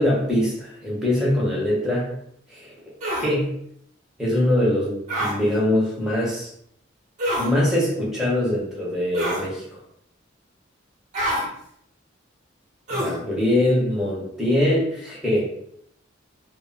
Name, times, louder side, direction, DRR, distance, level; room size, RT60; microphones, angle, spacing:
voice 1, 0.0-2.1 2.5-2.7 3.2-3.5 4.2-6.5 7.4-9.6 12.9-15.4, left 1 dB, 5° right, -5 dB, 0.8 m, -22 dB
sound 1, 3.0-3.3 5.1-5.4 7.2-7.5 9.1-9.5 11.1-11.5 12.9-13.2, equal, 40° right, 0.7 m, -25 dB
2.1 x 2.0 x 3.6 m, 0.71 s
head